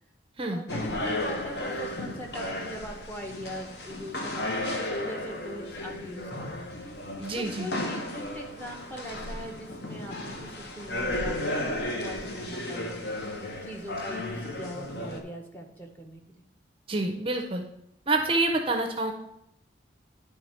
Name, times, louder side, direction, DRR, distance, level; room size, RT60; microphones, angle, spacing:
voice 1, 0.5-6.5 7.3-13.4 13.6-16.2, equal, 10° left, 1 dB, 0.8 m, -41 dB
sound 1, 0.7-15.2, left 1 dB, 55° left, 0.9 m, -34 dB
voice 2, 7.2-7.7 16.9-17.6 18.1-19.1, right 2 dB, 30° right, 5 dB, 0.5 m, -27 dB
10.5 x 3.5 x 4.3 m, 0.80 s
head